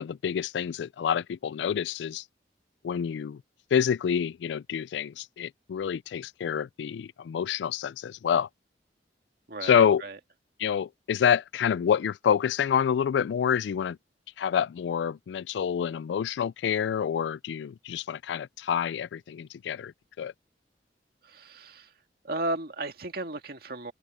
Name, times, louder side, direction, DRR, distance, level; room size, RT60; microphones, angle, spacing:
voice 1, 0.0-2.2 2.8-3.4 3.7-8.5 9.6-10.0 10.6-14.0 14.4-20.3, left 8 dB, 85° left, 0.3 m, -27 dB
voice 2, 9.5-10.2 21.2-21.9 22.2-23.9, right 2 dB, 60° right, 2.1 m, -34 dB
open air
head